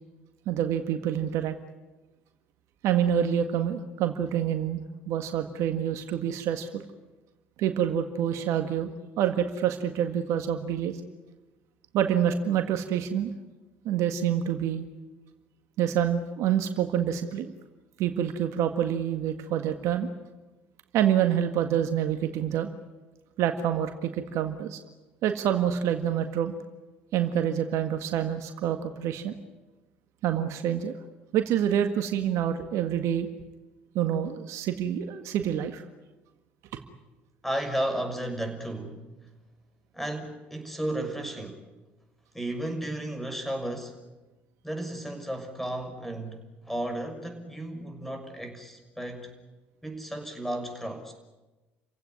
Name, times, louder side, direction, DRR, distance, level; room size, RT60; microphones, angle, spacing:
voice 1, 0.4-1.5 2.8-4.8 5.1-6.8 7.6-8.9 9.2-11.0 11.9-13.3 13.8-14.8 15.8-17.5 18.0-20.1 20.9-22.7 23.4-24.8 25.2-26.5 27.1-29.3 30.2-30.9 31.3-33.3 33.9-35.8, right 9 dB, 65° right, 7 dB, 1.8 m, -27 dB
voice 2, 37.4-39.1 39.9-41.7 42.3-44.0 44.6-49.3 49.8-51.1, right 1 dB, 5° left, 7 dB, 6.3 m, -34 dB
29.5 x 16.5 x 9.7 m, 1.1 s
hypercardioid pair, 60°, 5 cm